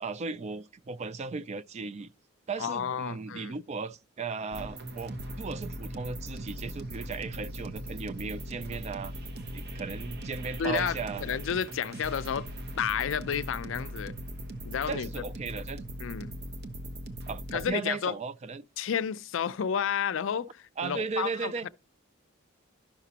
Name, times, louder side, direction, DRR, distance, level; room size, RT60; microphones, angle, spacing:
voice 1, 0.0-2.1 2.5-9.1 9.5-11.2 14.9-15.8 17.3-18.6 20.8-21.7, right 5 dB, 35° right, 0.3 m, -36 dB
voice 2, 2.6-3.5 10.6-12.5 12.8-14.1 14.6-15.1 16.0-16.4 17.5-18.2 18.8-21.7, left 7 dB, 70° left, 0.4 m, -31 dB
sound 1, 4.5-17.7, equal, 55° right, 0.8 m, -39 dB
11.5 x 5.9 x 2.8 m
head